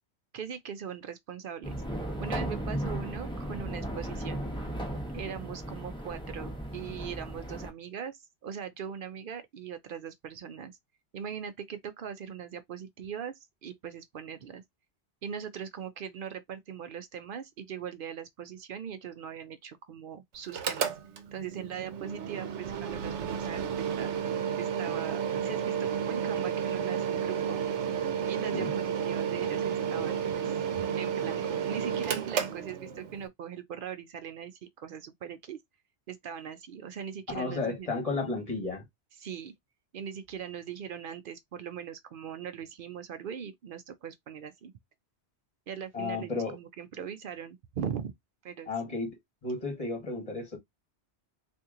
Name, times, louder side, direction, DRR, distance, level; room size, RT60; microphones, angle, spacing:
voice 1, 0.3-1.8 2.2-4.4 5.1-10.8 11.1-14.6 15.2-20.9 21.3-24.1 24.5-27.6 28.2-35.6 36.1-38.4 39.2-39.5 39.9-44.7 45.7-48.1 48.4-48.9, right 8 dB, 60° right, 0.6 m, -40 dB
sound 1, 1.6-7.7, right 1 dB, 5° left, 0.7 m, -36 dB
Mechanical fan, 20.4-33.3, right 8 dB, 85° right, 1.0 m, -32 dB
voice 2, 37.3-38.8 45.9-46.6 48.7-49.1 49.4-50.6, left 3 dB, 35° left, 1.3 m, -33 dB
2.8 x 2.6 x 3.6 m
omnidirectional pair, 1.1 m